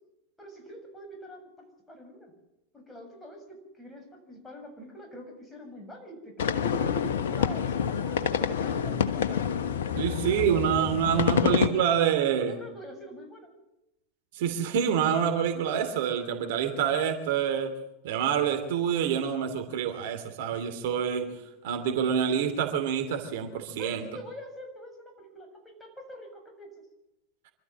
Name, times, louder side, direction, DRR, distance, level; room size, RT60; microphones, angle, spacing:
voice 1, 0.4-1.4 1.9-2.3 2.7-9.4 10.0-13.5 23.8-26.7, equal, 10° left, 2 dB, 7.1 m, -45 dB
sound 1, 6.4-11.7, left 8 dB, 70° left, 1.3 m, -27 dB
voice 2, 9.9-12.6 14.3-17.7 18.0-24.1, right 8 dB, 60° right, 6 dB, 2.9 m, -27 dB
26.0 x 13.5 x 7.6 m, 0.92 s
figure-of-eight pair, 90°, 0 cm